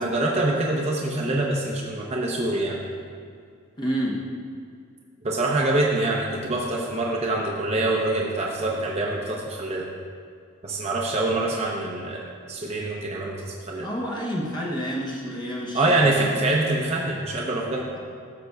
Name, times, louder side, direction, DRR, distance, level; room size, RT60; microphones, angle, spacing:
voice 1, 0.0-2.8 5.2-9.9 10.6-12.2 12.5-13.9 15.7-17.9, right 2 dB, 30° right, -3 dB, 0.7 m, -25 dB
voice 2, 3.8-4.2 13.8-16.4, equal, 20° left, -4 dB, 0.9 m, -29 dB
13.0 x 6.7 x 2.3 m, 2.3 s
head